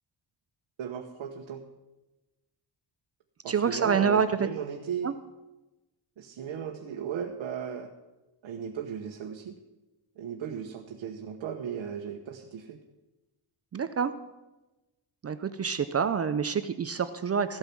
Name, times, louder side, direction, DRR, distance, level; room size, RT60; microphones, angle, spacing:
voice 1, 0.8-1.6 3.4-5.1 6.2-7.9 8.4-9.5 10.2-12.8, right 8 dB, 80° right, 2 dB, 1.2 m, -36 dB
voice 2, 3.5-4.5 5.0-5.1 13.7-14.1 15.2-17.6, right 6 dB, 35° right, 11 dB, 0.5 m, -27 dB
15.0 x 8.9 x 6.0 m, 1.0 s
wide cardioid pair, 155°, 46 cm